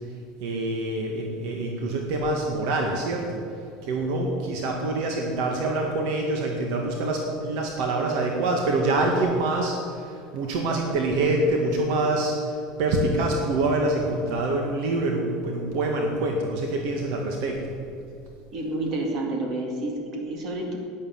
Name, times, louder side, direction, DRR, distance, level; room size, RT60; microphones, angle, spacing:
voice 1, 0.4-3.4 3.8-12.4 12.8-17.6, right 2 dB, 55° right, 1 dB, 1.8 m, -25 dB
voice 2, 18.5-20.8, right 2 dB, 30° right, 1 dB, 2.4 m, -29 dB
11.5 x 9.7 x 9.5 m, 2.5 s
cardioid pair, 175°, 0 cm